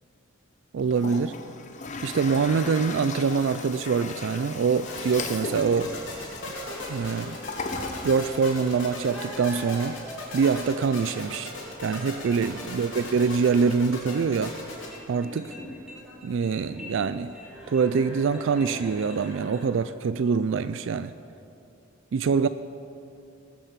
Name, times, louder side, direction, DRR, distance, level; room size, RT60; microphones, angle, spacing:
voice 1, 0.7-1.3 2.0-5.9 6.9-7.4 8.0-10.0 10.3-11.5 11.8-14.6 15.1-15.5 16.2-17.3 17.7-21.1 22.1-22.5, right 5 dB, 60° right, 13 dB, 0.3 m, -24 dB
Toilet flush, 0.8-9.0, left 3 dB, 35° left, 0.9 m, -37 dB
sound 1, 4.8-15.0, left 2 dB, 60° left, 3.5 m, -37 dB
sound 2, 5.7-19.6, left 1 dB, 5° right, 2.6 m, -46 dB
19.0 x 7.0 x 7.3 m, 2.7 s
head